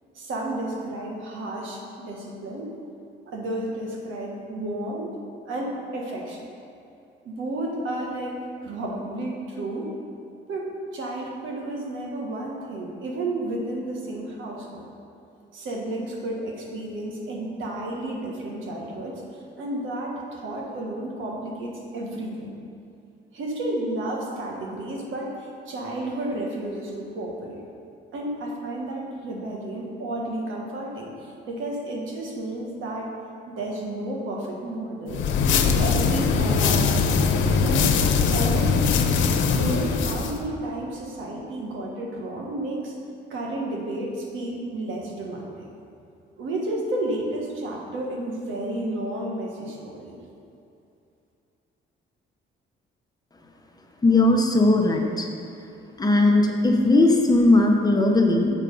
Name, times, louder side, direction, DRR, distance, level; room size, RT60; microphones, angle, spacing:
voice 1, 0.1-2.7 3.3-5.2 5.4-6.5 7.2-10.0 10.5-14.8 15.5-22.5 23.3-27.6 28.1-33.1 33.5-35.3 35.8-37.9 38.3-39.0 39.5-43.0 43.3-45.7 46.4-50.2, right 1 dB, 80° right, -1 dB, 1.5 m, -32 dB
sound 1, 35.1-40.4, left 5 dB, 75° left, 0.6 m, -21 dB
voice 2, 54.0-55.3 56.0-58.5, left 2 dB, 20° left, 2 dB, 0.9 m, -18 dB
7.3 x 5.8 x 5.3 m, 2.6 s
cardioid pair, 90°, 20 cm